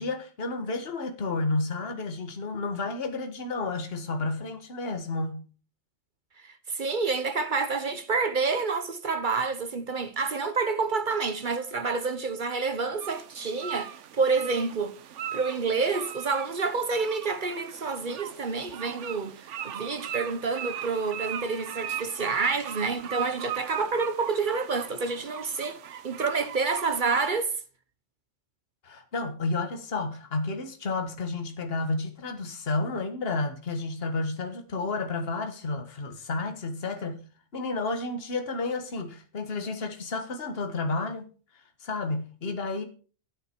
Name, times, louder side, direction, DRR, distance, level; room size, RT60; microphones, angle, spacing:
voice 1, 0.0-5.5 28.8-37.2 37.5-41.3 41.8-42.8, left 3 dB, 50° left, 1.6 m, -31 dB
voice 2, 6.4-14.9 15.3-27.5, right 4 dB, 45° right, 1.0 m, -28 dB
sound 1, 13.0-27.3, right 10 dB, 75° right, 1.0 m, -39 dB
11.5 x 10.0 x 4.5 m
omnidirectional pair, 1.3 m